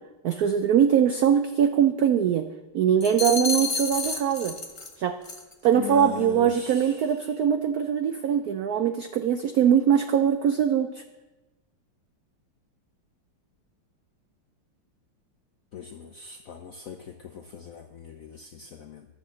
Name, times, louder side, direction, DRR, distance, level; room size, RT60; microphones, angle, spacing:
voice 1, 0.2-2.5 2.7-4.5 5.0-5.1 5.6-11.0, right 8 dB, 90° right, 8 dB, 0.8 m, -22 dB
sound 1, 3.0-4.9 5.2-5.5, left 4 dB, 45° left, 0.4 m, -30 dB
voice 2, 5.7-7.3 15.7-19.1, left 7 dB, 75° left, 6 dB, 0.7 m, -40 dB
11.0 x 6.7 x 7.4 m, 1.1 s
omnidirectional pair, 2.3 m